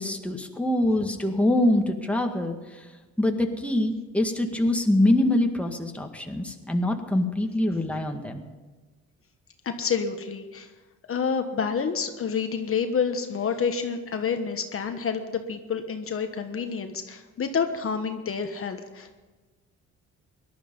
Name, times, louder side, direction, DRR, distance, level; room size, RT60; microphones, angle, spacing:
voice 1, 0.0-2.9 3.2-8.4, left 1 dB, 5° left, 3 dB, 1.8 m, -24 dB
voice 2, 9.6-10.7 11.1-19.3, left 6 dB, 45° left, 6 dB, 1.3 m, -28 dB
18.5 x 12.0 x 5.4 m, 1.3 s
cardioid pair, 90°, 30 cm